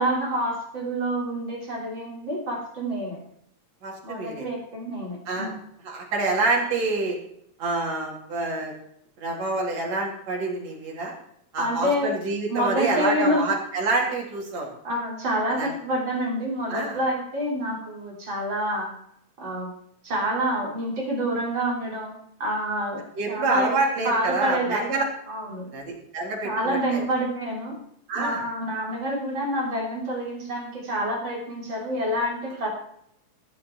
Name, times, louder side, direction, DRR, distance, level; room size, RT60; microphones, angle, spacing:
voice 1, 0.0-3.2 4.0-5.6 11.6-12.1 12.5-13.5 14.8-18.9 19.4-19.7 20.0-23.0 23.3-24.9 25.3-25.7 26.4-27.8 28.2-32.7, equal, 40° right, -2 dB, 4.1 m, -27 dB
voice 2, 3.8-4.5 5.3-5.5 5.8-7.2 7.6-8.7 9.2-11.1 11.5-14.7 15.6-15.7 16.7-17.0 23.2-25.0 25.7-27.0 28.1-28.4, right 3 dB, 65° right, -1 dB, 4.3 m, -27 dB
19.0 x 8.5 x 4.5 m, 0.72 s
omnidirectional pair, 3.3 m